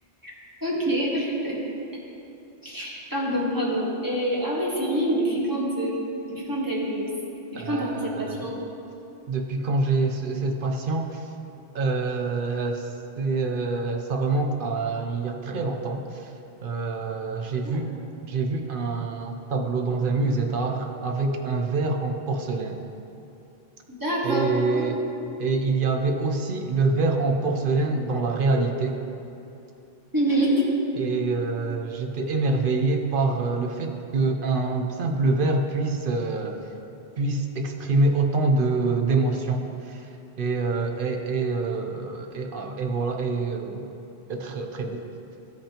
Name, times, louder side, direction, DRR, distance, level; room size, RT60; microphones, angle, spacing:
voice 1, 0.6-1.6 2.6-5.9 6.3-7.1 7.5-8.5 17.6-17.8 23.9-24.5 24.7-24.9 30.1-30.6, right 1 dB, 20° right, -5 dB, 1.4 m, -26 dB
voice 2, 7.5-8.5 9.3-11.2 11.7-12.9 13.2-16.3 16.6-17.9 18.3-22.9 24.2-25.0 25.4-29.0 30.9-36.6 37.2-40.1 40.4-43.8 44.3-45.0, right 3 dB, 60° right, 3 dB, 0.8 m, -26 dB
13.0 x 5.4 x 2.9 m, 2.8 s
omnidirectional pair, 1.1 m